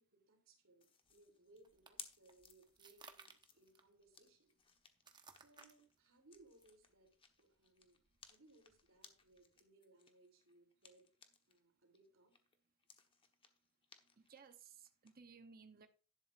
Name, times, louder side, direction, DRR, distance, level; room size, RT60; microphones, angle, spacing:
voice 1, 0.0-4.5 5.3-7.1 7.4-8.0 8.3-11.1 11.5-12.3, right 2 dB, 65° right, 3.2 m, -68 dB
sound 1, 0.8-11.6 11.9-15.1, left 6 dB, 25° left, 1.2 m, -62 dB
sound 2, 1.0-9.6, right 4 dB, 20° right, 1.1 m, -65 dB
voice 2, 14.2-15.9, right 5 dB, 40° right, 0.8 m, -59 dB
11.5 x 11.5 x 2.5 m
head